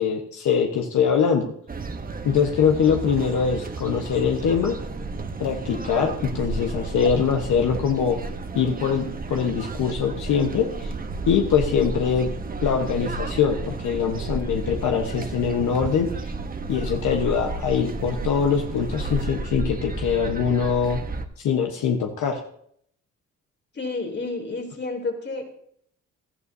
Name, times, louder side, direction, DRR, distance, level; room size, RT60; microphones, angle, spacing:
voice 1, 0.0-1.4 2.2-4.8 5.4-8.2 8.5-10.9 11.3-12.3 12.6-16.3 16.7-21.0 21.4-22.4, left 7 dB, 75° left, 3 dB, 1.2 m, -23 dB
sound 1, 1.7-21.2, right 3 dB, 30° right, 1.0 m, -32 dB
voice 2, 23.7-25.5, left 3 dB, 35° left, 2 dB, 3.2 m, -30 dB
17.5 x 12.5 x 2.7 m, 0.67 s
cardioid pair, 90°, 30 cm